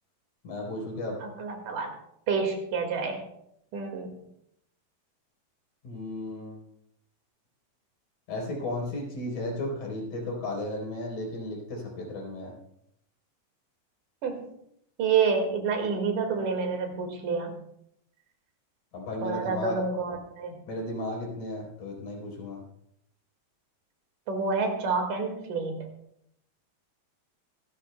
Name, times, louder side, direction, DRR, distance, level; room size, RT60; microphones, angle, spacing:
voice 1, 0.4-1.2 5.8-6.6 8.3-12.5 18.9-19.8 20.7-22.6, left 1 dB, 70° left, -1 dB, 5.3 m, -34 dB
voice 2, 1.2-1.9 2.3-3.2 3.7-4.1 14.2-14.5 15.0-17.5 19.2-20.6 24.3-25.9, right 5 dB, 75° right, 4 dB, 3.5 m, -28 dB
25.5 x 12.0 x 2.2 m, 0.73 s
omnidirectional pair, 3.7 m